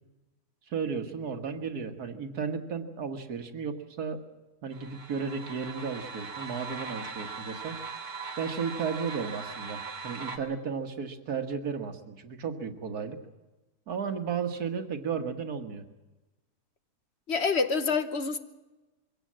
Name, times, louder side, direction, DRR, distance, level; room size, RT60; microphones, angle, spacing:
voice 1, 0.7-4.2 4.6-7.8 8.4-13.2 13.9-15.8, right 6 dB, 80° right, 2.0 m, -34 dB
sound 1, 4.7-10.4, right 5 dB, 30° right, 2.0 m, -40 dB
voice 2, 17.3-18.4, left 4 dB, 50° left, 1.1 m, -27 dB
23.0 x 17.0 x 7.5 m
omnidirectional pair, 1.6 m